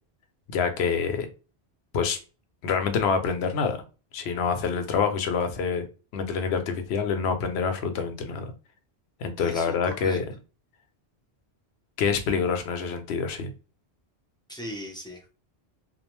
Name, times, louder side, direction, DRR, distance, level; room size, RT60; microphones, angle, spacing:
voice 1, 0.5-1.3 1.9-2.2 2.6-3.8 4.1-5.8 6.1-8.5 9.2-10.3 12.0-13.5, left 6 dB, 80° left, 7 dB, 0.8 m, -26 dB
voice 2, 9.4-10.2 14.5-15.3, equal, 5° left, 0 dB, 0.3 m, -39 dB
2.4 x 2.2 x 3.0 m, 0.33 s
omnidirectional pair, 1.1 m